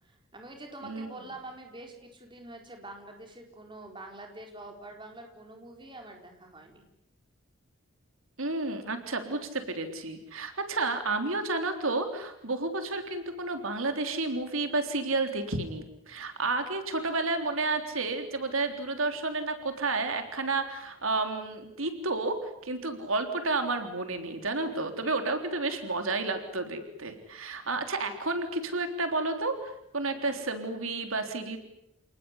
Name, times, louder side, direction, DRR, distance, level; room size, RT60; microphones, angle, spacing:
voice 1, 0.0-6.8, right 2 dB, 20° right, 3 dB, 4.5 m, -46 dB
voice 2, 0.8-1.1 8.4-31.6, right 3 dB, 75° right, 7 dB, 3.5 m, -31 dB
29.5 x 19.5 x 9.9 m, 0.81 s
head